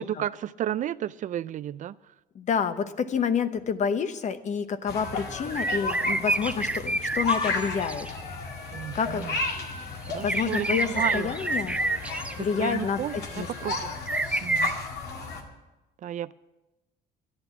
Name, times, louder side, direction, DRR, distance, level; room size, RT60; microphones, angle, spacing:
voice 1, 0.0-1.9 8.7-9.4 10.1-11.4 12.4-13.9 14.4-14.7 16.0-16.3, right 11 dB, 50° right, 16 dB, 0.4 m, -32 dB
voice 2, 2.3-8.1 8.9-9.3 10.2-11.8 12.3-13.5, left 6 dB, 45° left, 11 dB, 0.9 m, -28 dB
sound 1, 4.9-15.4, left 3 dB, 70° left, 2.2 m, -34 dB
sound 2, 5.5-8.1 10.1-12.3 14.1-14.7, right 2 dB, 5° right, 0.6 m, -28 dB
11.5 x 11.0 x 7.0 m, 1.0 s
cardioid pair, 110°, 17 cm